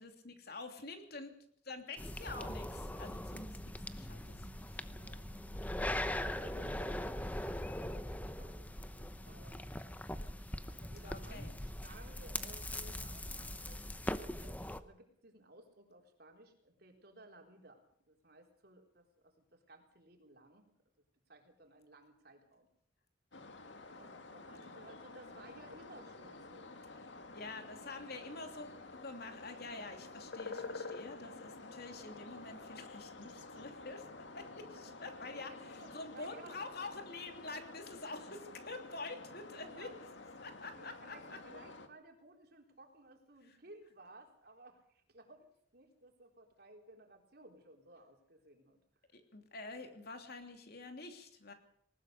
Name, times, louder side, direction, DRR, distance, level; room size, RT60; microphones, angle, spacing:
voice 1, 0.0-1.3 1.6-4.9 6.8-6.9 11.0-11.5 27.3-34.0 34.3-40.1 40.4-41.4 49.1-51.5, left 3 dB, 55° left, 5 dB, 3.0 m, -47 dB
sound 1, 2.0-14.8, left 1 dB, 10° left, 0.9 m, -41 dB
sound 2, 2.3-13.9, equal, 25° left, 4.3 m, -59 dB
voice 2, 4.7-5.2 5.6-9.7 10.7-20.7 21.3-22.7 24.0-26.8 33.3-33.7 35.3-36.7 39.6-39.9 40.8-48.8, right 2 dB, 55° right, 3 dB, 4.0 m, -58 dB
sound 3, 23.3-41.9, left 3 dB, 70° left, 1.9 m, -50 dB
19.5 x 19.5 x 6.8 m, 0.66 s
head